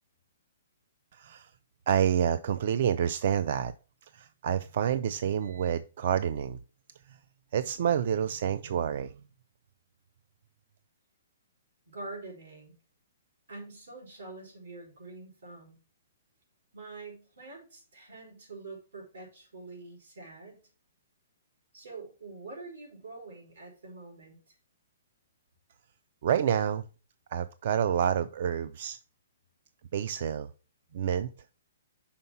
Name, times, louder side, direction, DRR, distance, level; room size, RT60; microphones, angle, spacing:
voice 1, 1.1-1.5 1.9-3.7 4.1-6.6 7.1-7.2 7.5-9.1 26.2-26.8 27.3-29.0 29.9-30.5 30.9-31.3, right 9 dB, 45° right, 0.3 m, -28 dB
voice 2, 11.9-12.7 13.5-15.8 16.7-20.6 21.7-24.6, right 3 dB, 85° right, 3.9 m, -45 dB
5.7 x 3.9 x 5.4 m
hypercardioid pair, 170°, 0 cm